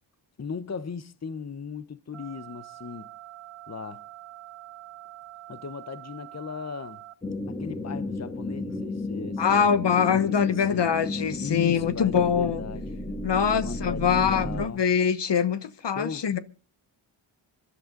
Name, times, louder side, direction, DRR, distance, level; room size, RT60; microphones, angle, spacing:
voice 1, 0.4-3.1 3.7-4.0 5.5-7.0 7.5-10.9 11.4-12.9 13.5-14.8 15.9-16.2, left 5 dB, 30° left, 0.9 m, -37 dB
sound 1, 2.1-7.1, right 15 dB, 80° right, 1.7 m, -45 dB
sound 2, 7.2-14.7, left 2 dB, 15° left, 2.6 m, -33 dB
voice 2, 9.4-12.6 13.2-16.4, left 7 dB, 55° left, 1.1 m, -24 dB
25.5 x 11.0 x 3.8 m
cardioid pair, 60°, 50 cm